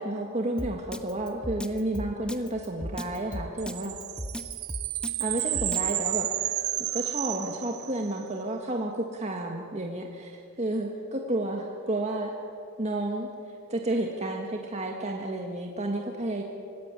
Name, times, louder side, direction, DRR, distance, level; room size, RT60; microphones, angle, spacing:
voice 1, 0.0-3.9 5.2-6.3 6.8-12.3 12.8-13.3 13.7-16.4, right 1 dB, 30° right, 1 dB, 1.7 m, -31 dB
Drum kit, 0.6-5.9, equal, 5° left, 1.1 m, -35 dB
sound 1, 3.6-8.2, right 14 dB, 80° right, 1.1 m, -31 dB
24.5 x 16.5 x 9.7 m, 2.6 s
head